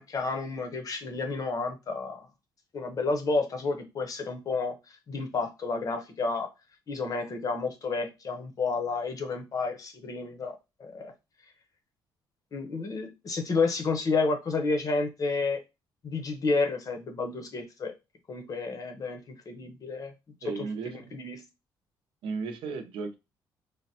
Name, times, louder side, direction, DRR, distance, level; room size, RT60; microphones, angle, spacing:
voice 1, 0.0-2.3 2.7-4.7 5.1-6.5 6.9-11.1 12.5-15.6 16.0-17.9 18.3-20.1 20.4-21.4, left 3 dB, 45° left, 6 dB, 0.7 m, -31 dB
voice 2, 20.4-20.9 22.2-23.2, right 4 dB, 80° right, 6 dB, 0.6 m, -34 dB
3.3 x 2.1 x 2.7 m, 0.26 s
cardioid pair, 90°, 9 cm